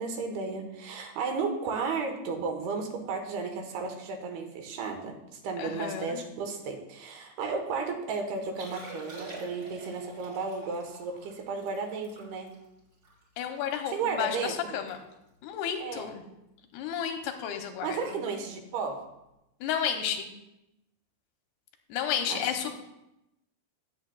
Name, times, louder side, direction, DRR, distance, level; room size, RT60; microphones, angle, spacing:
voice 1, 0.0-12.5 13.9-14.8 15.8-16.1 17.8-19.0 22.3-22.8, right 4 dB, 80° right, 4 dB, 3.1 m, -34 dB
voice 2, 5.6-6.3 13.4-15.0 15.4-16.2 16.7-18.2 19.6-20.3 21.9-22.8, left 8 dB, 90° left, 5 dB, 2.8 m, -32 dB
Liquid, 8.4-13.8 14.3-14.4 14.6-15.0 15.2-15.5 16.1-16.3 17.8-17.9, right 2 dB, 25° right, 2.9 m, -47 dB
18.5 x 7.7 x 2.3 m, 0.89 s
omnidirectional pair, 4.6 m